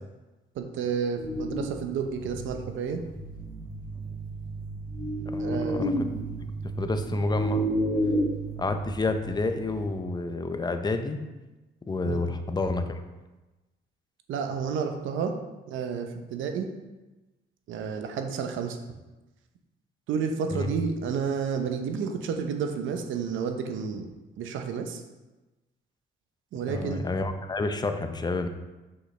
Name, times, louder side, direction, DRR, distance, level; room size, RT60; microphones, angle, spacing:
voice 1, 0.6-3.0 5.4-5.9 12.1-12.3 14.3-15.3 15.7-16.7 17.7-18.8 20.1-24.1 24.4-25.0 26.5-27.1, right 6 dB, 80° right, 5 dB, 0.8 m, -30 dB
sound 1, 1.2-9.9, right 1 dB, 45° left, 1.7 m, -32 dB
voice 2, 5.3-5.9 6.8-7.6 8.6-11.2 11.9-12.8 20.5-20.7 26.7-28.5, left 3 dB, 20° left, 7 dB, 0.6 m, -29 dB
6.0 x 5.4 x 3.3 m, 1.1 s
cardioid pair, 90°, 20 cm